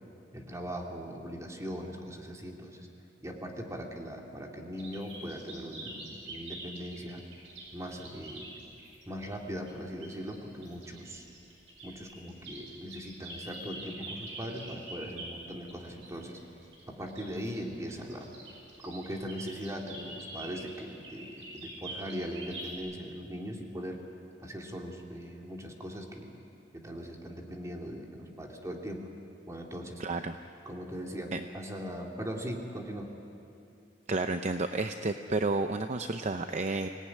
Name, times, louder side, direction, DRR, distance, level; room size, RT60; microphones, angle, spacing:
voice 1, 0.3-2.9 3.2-7.2 7.7-8.6 9.1-11.3 11.8-16.4 16.9-18.3 18.8-24.0 24.4-26.4 26.7-29.1 29.5-30.0 30.7-33.1, equal, 15° right, 1 dB, 2.6 m, -40 dB
sound 1, 4.8-9.3 9.6-22.7, right 2 dB, 90° right, 5.5 m, -46 dB
voice 2, 30.0-30.4 31.3-31.4 34.1-36.9, right 3 dB, 40° right, 7 dB, 0.7 m, -31 dB
25.0 x 18.0 x 9.8 m, 2.7 s
head